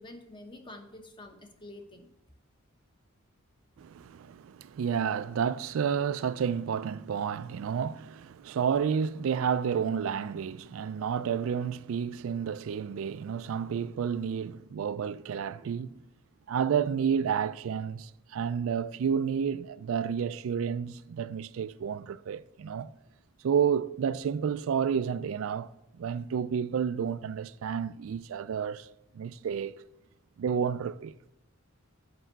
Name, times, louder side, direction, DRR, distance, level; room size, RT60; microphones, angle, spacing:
voice 1, 0.0-2.1, left 1 dB, 25° left, 0.9 m, -47 dB
voice 2, 3.8-16.0 16.5-22.9 23.4-25.7 26.0-28.9 29.1-29.8 30.4-31.3, right 7 dB, 70° right, 0.3 m, -30 dB
7.8 x 5.5 x 6.0 m
head